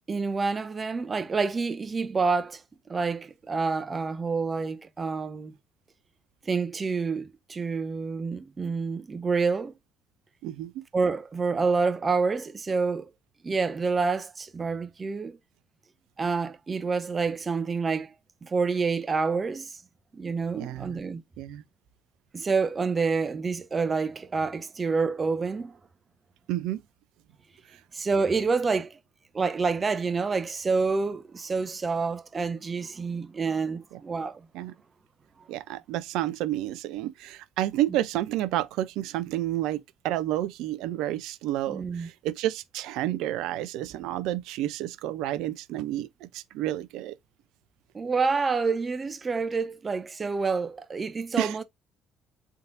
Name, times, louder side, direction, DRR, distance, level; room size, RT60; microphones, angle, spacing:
voice 1, 0.1-2.6 2.9-5.6 6.4-9.7 10.9-13.1 13.4-15.4 16.2-18.1 18.4-19.8 20.1-21.2 22.3-25.7 27.9-29.0 29.3-34.4 35.4-35.5 41.7-42.1 47.9-51.6, right 4 dB, 30° right, 0.7 m, -28 dB
voice 2, 10.4-10.8 20.6-21.0 21.4-21.6 26.5-26.8 34.5-34.7 35.5-47.1 51.4-51.5, right 14 dB, 65° right, 0.4 m, -30 dB
3.9 x 3.3 x 2.5 m
hypercardioid pair, 55°, 0 cm